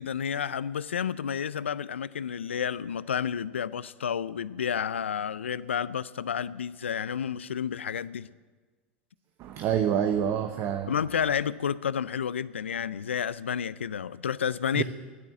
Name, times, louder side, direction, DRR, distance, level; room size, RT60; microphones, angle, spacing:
voice 1, 0.0-8.3 10.9-14.8, left 8 dB, 90° left, 18 dB, 0.4 m, -30 dB
voice 2, 9.4-10.9 14.7-14.8, right 9 dB, 45° right, 7 dB, 0.9 m, -27 dB
12.0 x 9.9 x 9.2 m, 1.3 s
hypercardioid pair, 95°, 6 cm